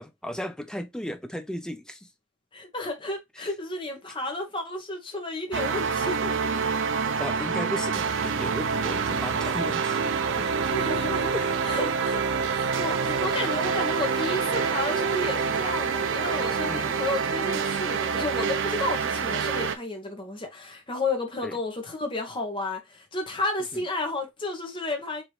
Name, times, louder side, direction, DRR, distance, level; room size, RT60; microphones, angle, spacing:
voice 1, 0.0-2.1 3.4-3.5 7.2-10.5 11.3-11.6 13.0-13.2 16.7-17.0 21.4-21.6 23.7-23.9, equal, 5° left, 0.4 m, -35 dB
voice 2, 2.5-6.5 7.3-7.5 10.6-11.4 11.6-12.2 12.5-25.2, left 2 dB, 25° left, 1.2 m, -32 dB
sound 1, 5.5-19.8, right 5 dB, 60° right, 0.5 m, -27 dB
4.8 x 2.9 x 3.2 m
head